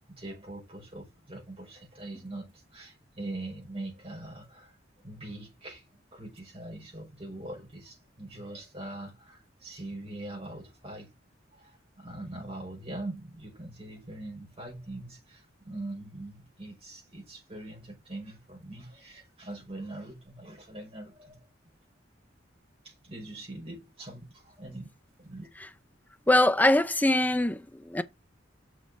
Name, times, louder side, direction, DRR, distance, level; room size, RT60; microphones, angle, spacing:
voice 1, 0.0-5.8 6.1-11.1 11.5-21.4 22.8-24.9 25.2-25.5, right 2 dB, 30° right, 5.4 m, -42 dB
voice 2, 26.3-28.0, left 1 dB, 10° left, 0.6 m, -23 dB
6.8 x 6.7 x 4.8 m
head